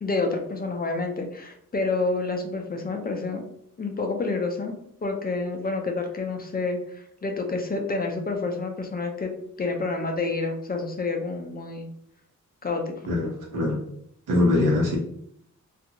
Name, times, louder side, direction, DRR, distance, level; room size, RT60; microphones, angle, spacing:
voice 1, 0.0-3.4 3.8-4.7 5.0-9.3 9.6-11.9 12.6-12.8, left 3 dB, 30° left, 3 dB, 0.5 m, -28 dB
voice 2, 13.1-13.8 14.3-15.0, left 2 dB, 85° right, -2 dB, 1.0 m, -22 dB
2.5 x 2.4 x 2.8 m, 0.70 s
wide cardioid pair, 110°, 32 cm